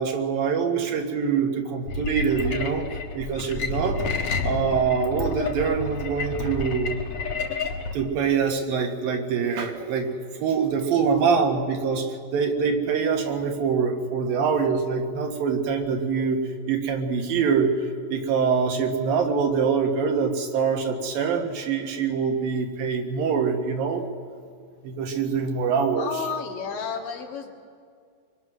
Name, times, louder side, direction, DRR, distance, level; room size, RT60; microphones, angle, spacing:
voice 1, 0.0-2.9 3.1-4.0 4.4-7.0 7.9-17.7 18.1-24.0 24.8-26.1, right 6 dB, 80° right, 3 dB, 3.3 m, -24 dB
sound 1, 1.9-7.9, left 4 dB, 55° left, 1.9 m, -30 dB
voice 2, 25.9-27.5, left 5 dB, 70° left, 1 dB, 3.6 m, -31 dB
23.5 x 23.0 x 6.2 m, 2.1 s
omnidirectional pair, 4.1 m